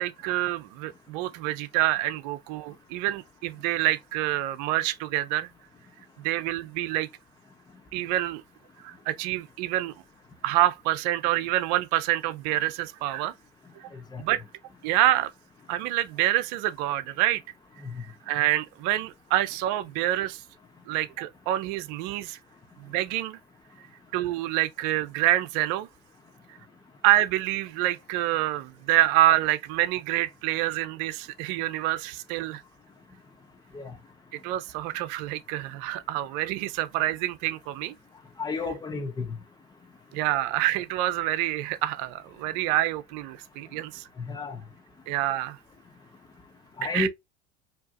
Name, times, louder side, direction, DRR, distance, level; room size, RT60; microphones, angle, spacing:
voice 1, 0.0-5.5 6.2-7.1 7.9-8.4 8.8-9.9 10.4-13.3 13.8-13.9 14.2-14.4 14.8-15.3 15.7-17.4 18.3-20.4 20.9-22.4 22.8-23.4 24.1-25.9 27.0-32.6 34.4-37.9 40.1-44.1 45.1-45.6 46.8-47.1, right 14 dB, 70° right, 0.6 m, -27 dB
voice 2, 38.4-39.3 44.3-44.6 46.8-47.1, left 4 dB, 20° left, 1.0 m, -30 dB
4.6 x 2.9 x 2.5 m
supercardioid pair, 90°, 21 cm